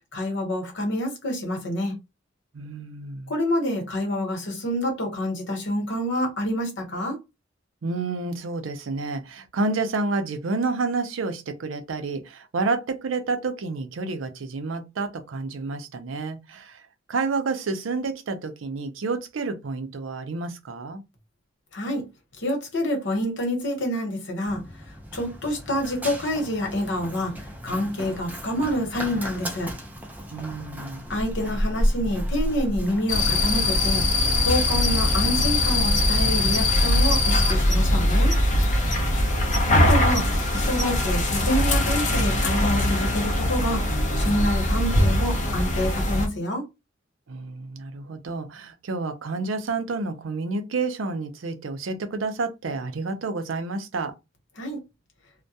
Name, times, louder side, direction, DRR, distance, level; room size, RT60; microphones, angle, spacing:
voice 1, 0.1-1.9 3.3-7.2 21.7-22.0 22.4-24.6 25.1-27.3 27.6-29.7 31.1-34.0 34.4-38.3 39.7-43.9 44.1-46.6 54.6-54.8, left 1 dB, 70° left, 1.0 m, -27 dB
voice 2, 2.5-3.3 7.8-16.8 17.1-21.0 30.3-31.0 38.9-39.5 47.3-54.1, right 3 dB, 85° right, 0.5 m, -29 dB
Run, 24.5-40.5, equal, 10° right, 0.5 m, -34 dB
Japan Kashiwa Countryside Car Passing Crickets, 33.1-46.3, left 1 dB, 40° left, 0.6 m, -21 dB
2.2 x 2.1 x 2.7 m
head